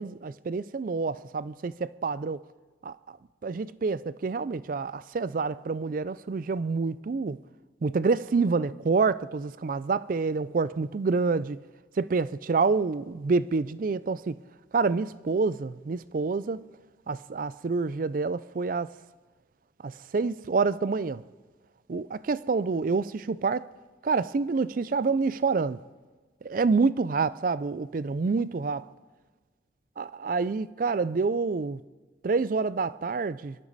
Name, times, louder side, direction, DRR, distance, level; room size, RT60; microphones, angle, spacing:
voice 1, 0.0-2.4 2.8-3.2 3.4-7.4 7.8-11.6 12.0-14.4 14.7-16.6 17.1-18.9 19.8-21.2 21.9-23.7 24.0-25.8 26.4-28.8 30.0-31.8 32.2-33.6, right 4 dB, 45° right, 0.4 m, -27 dB
24.5 x 12.5 x 4.1 m
head